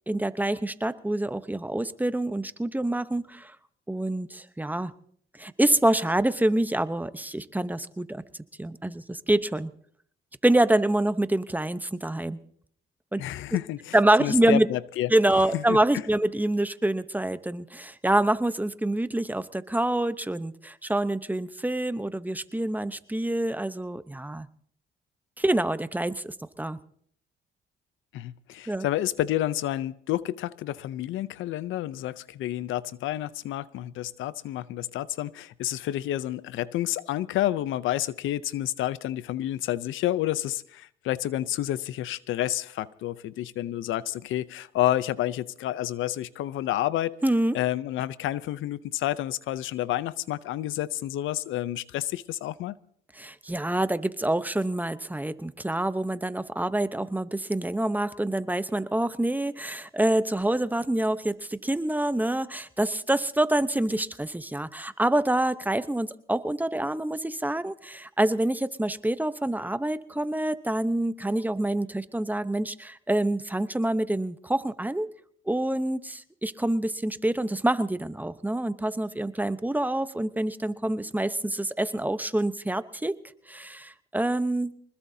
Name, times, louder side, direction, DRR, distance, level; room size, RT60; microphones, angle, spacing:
voice 1, 0.1-3.5 3.9-4.9 5.4-8.2 8.6-9.7 10.4-12.4 13.1-13.2 13.9-14.7 15.1-24.5 25.4-26.8 28.7-28.9 47.2-47.6 53.2-75.1 75.5-83.1 83.5-84.7, right 1 dB, 10° right, 0.9 m, -26 dB
voice 2, 13.2-13.9 14.2-15.1 15.5-15.8 28.1-47.2 47.5-52.7, left 13 dB, 85° left, 0.6 m, -29 dB
24.5 x 20.5 x 2.8 m
cardioid pair, 90°, 20 cm